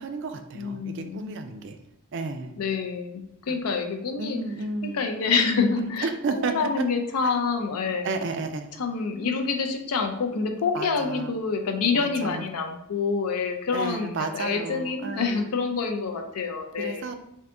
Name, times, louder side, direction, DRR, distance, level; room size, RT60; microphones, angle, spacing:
voice 1, 0.0-1.8 2.1-2.5 3.5-3.6 4.2-5.9 6.2-6.8 8.0-8.7 10.7-11.3 11.9-12.5 13.7-15.5 16.8-17.2, right 3 dB, 55° right, 7 dB, 0.3 m, -32 dB
voice 2, 0.5-1.3 2.6-4.4 4.8-8.1 8.8-17.1, left 5 dB, 90° left, 5 dB, 0.5 m, -27 dB
3.5 x 2.6 x 2.5 m, 0.82 s
head